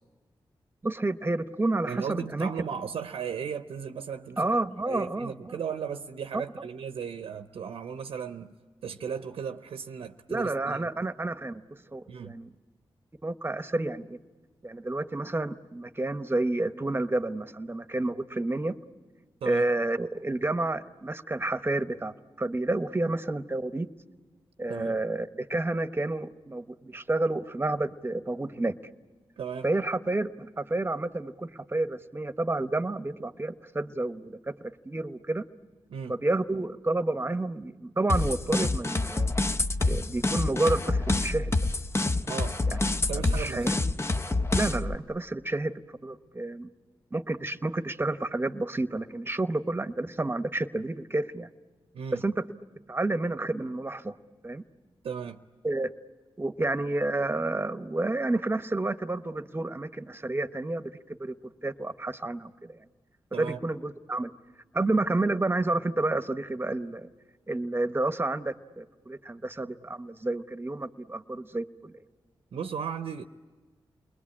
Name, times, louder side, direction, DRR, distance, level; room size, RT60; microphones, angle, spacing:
voice 1, 0.8-2.5 4.4-5.5 6.3-6.4 10.3-11.6 11.9-12.5 13.2-14.2 14.6-18.7 19.4-23.9 24.6-28.8 29.6-35.4 36.1-39.3 39.8-41.5 42.7-42.8 43.2-43.8 44.5-45.7 46.0-46.7 47.1-51.5 52.2-52.3 52.9-54.1 54.4-54.6 55.6-55.9 56.4-60.9 61.2-61.3 61.6-62.8 63.3-64.3 64.7-67.1 67.5-71.9, right 2 dB, 25° right, 1.0 m, -30 dB
voice 2, 1.9-4.5 4.9-8.6 8.8-10.9 12.1-12.4 19.4-19.7 24.7-25.0 29.4-29.7 35.9-36.1 42.2-42.6 43.1-43.7 51.9-52.2 55.0-55.4 63.3-63.6 72.5-73.2, right 7 dB, 85° right, 0.8 m, -36 dB
sound 1, 38.1-44.9, left 2 dB, 30° left, 0.8 m, -27 dB
29.5 x 21.0 x 8.6 m
cardioid pair, 60°, 9 cm